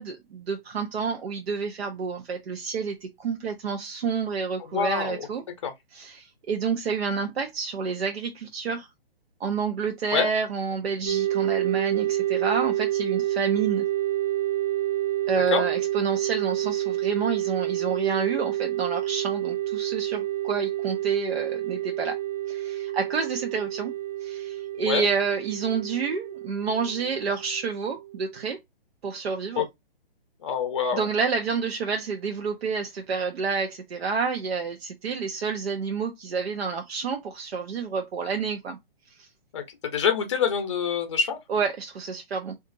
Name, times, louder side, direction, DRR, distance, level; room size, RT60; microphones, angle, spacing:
voice 1, 0.0-5.4 5.9-8.9 9.4-13.8 15.3-22.2 22.5-23.9 24.2-28.6 29.0-29.7 30.9-38.8 39.2-39.3 41.5-42.5, right 5 dB, 90° right, 0.6 m, -29 dB
voice 2, 4.6-5.3 5.6-5.7 10.1-10.3 15.5-15.7 24.8-25.1 29.6-29.7 30.4-31.0 39.5-41.4, left 7 dB, 30° left, 0.5 m, -26 dB
sound 1, 11.1-28.4, right 13 dB, 40° right, 0.7 m, -29 dB
2.8 x 2.5 x 2.5 m
hypercardioid pair, 165°, 30 cm